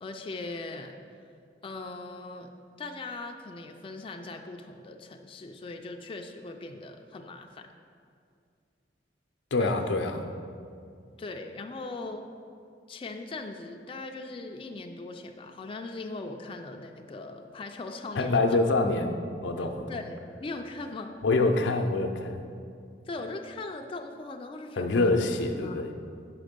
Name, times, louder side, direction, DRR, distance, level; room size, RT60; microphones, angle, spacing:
voice 1, 0.0-0.9 1.6-2.5 2.8-7.7 9.6-9.8 11.2-12.3 12.9-18.6 19.6-21.2 23.1-25.1 25.6-25.9, left 3 dB, 30° left, 4 dB, 0.3 m, -40 dB
voice 2, 9.5-10.2 18.2-19.1 19.4-19.9 21.2-22.4 24.8-25.9, left 2 dB, 90° left, 6 dB, 0.5 m, -25 dB
5.9 x 5.0 x 5.1 m, 2.3 s
head